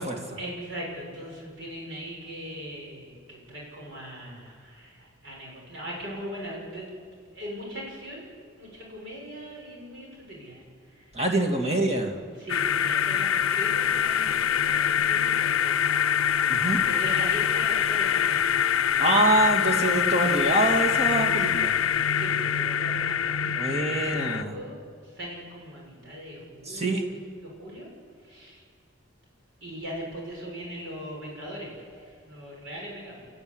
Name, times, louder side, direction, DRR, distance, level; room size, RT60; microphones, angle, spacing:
voice 1, 0.4-6.9 7.3-11.2 11.6-11.8 12.4-15.7 16.8-18.8 22.1-27.9 28.2-28.6 29.6-33.3, equal, 60° right, -2 dB, 7.0 m, -40 dB
voice 2, 11.1-12.1 16.5-16.8 19.0-21.7 23.6-24.5 26.7-27.0, right 2 dB, 30° right, 2 dB, 2.5 m, -25 dB
sound 1, 12.5-24.4, left 9 dB, 85° left, 0.6 m, -24 dB
29.0 x 14.0 x 9.9 m, 2.1 s
head